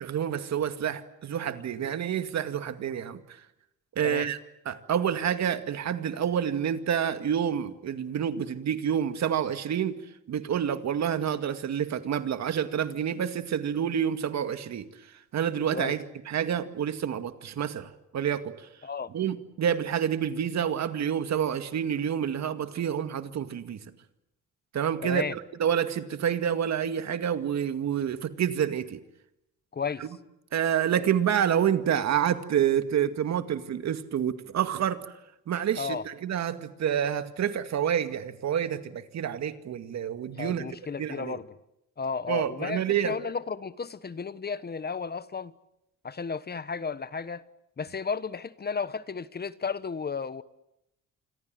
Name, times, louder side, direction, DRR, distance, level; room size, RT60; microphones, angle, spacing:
voice 1, 0.0-3.2 4.0-4.4 4.7-10.0 10.3-18.7 19.1-23.8 24.7-25.3 25.6-29.0 30.0-30.1 30.5-35.1 35.5-40.7 41.0-41.4 42.3-43.2, right 9 dB, 65° right, 2.2 m, -28 dB
voice 2, 25.0-25.3 29.7-30.1 35.8-36.0 40.4-41.5 42.0-45.5 46.0-47.4 47.8-50.4, left 5 dB, 35° left, 1.2 m, -33 dB
28.5 x 26.0 x 7.8 m
cardioid pair, 90°, 30 cm